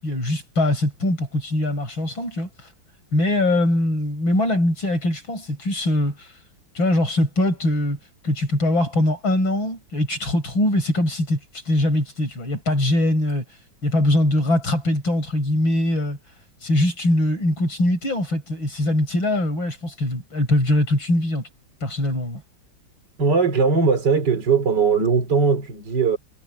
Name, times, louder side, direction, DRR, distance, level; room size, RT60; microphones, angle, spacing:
voice 1, 0.0-2.5 3.1-6.3 6.7-8.0 8.2-11.4 11.7-13.4 13.8-16.2 16.6-21.5 21.8-22.4, left 1 dB, 70° left, 8.2 m, -22 dB
voice 2, 23.2-26.2, right 5 dB, 55° right, 3.6 m, -19 dB
omnidirectional pair, 2.2 m